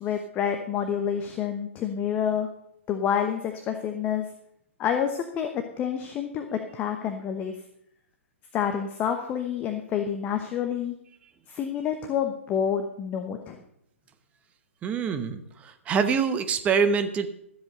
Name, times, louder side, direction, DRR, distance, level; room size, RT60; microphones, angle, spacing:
voice 1, 0.0-2.5 2.9-4.3 4.8-7.5 8.5-10.9 11.5-13.6, left 8 dB, 20° left, 5 dB, 1.0 m, -28 dB
voice 2, 14.8-17.3, right 6 dB, 15° right, 9 dB, 1.0 m, -25 dB
13.5 x 7.7 x 6.7 m, 0.74 s
figure-of-eight pair, 125°, 7 cm